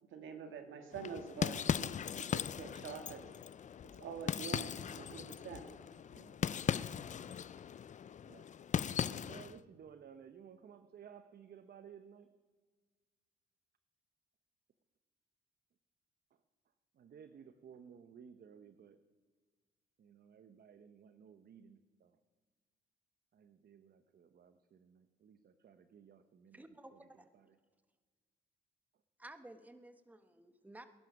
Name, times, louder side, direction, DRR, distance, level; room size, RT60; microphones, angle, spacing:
voice 1, 0.0-3.2 3.9-5.7, right 6 dB, 75° right, 6 dB, 1.8 m, -46 dB
sound 1, 0.9-9.6, left 8 dB, 40° left, 0.4 m, -38 dB
voice 2, 6.1-6.5 8.2-8.6 9.1-12.3 16.9-19.0 20.0-22.2 23.3-26.6 26.9-27.0 27.3-27.5, right 7 dB, 50° right, 10 dB, 0.9 m, -57 dB
voice 3, 26.5-27.3 29.2-30.9, right 1 dB, 10° right, 9 dB, 1.2 m, -54 dB
21.0 x 10.5 x 6.0 m, 1.5 s
cardioid pair, 90°, 20 cm